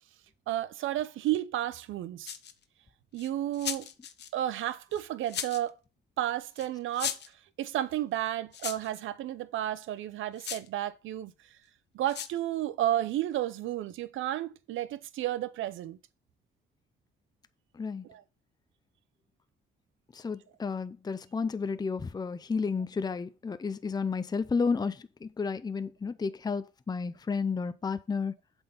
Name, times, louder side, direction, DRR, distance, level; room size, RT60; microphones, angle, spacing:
voice 1, 0.5-2.4 3.1-3.9 4.3-5.8 6.2-7.2 7.6-11.3 11.9-16.0 18.1-18.2, right 13 dB, 80° right, 0.7 m, -32 dB
sound 1, 2.2-2.6 3.2-4.3 4.9-5.7 6.6-6.7 6.9-7.3 8.5-9.0 10.4-10.7 12.1-12.4, left 9 dB, 60° left, 0.9 m, -37 dB
voice 2, 20.1-28.3, left 5 dB, 20° left, 0.5 m, -32 dB
7.7 x 4.5 x 5.5 m
cardioid pair, 90°, 20 cm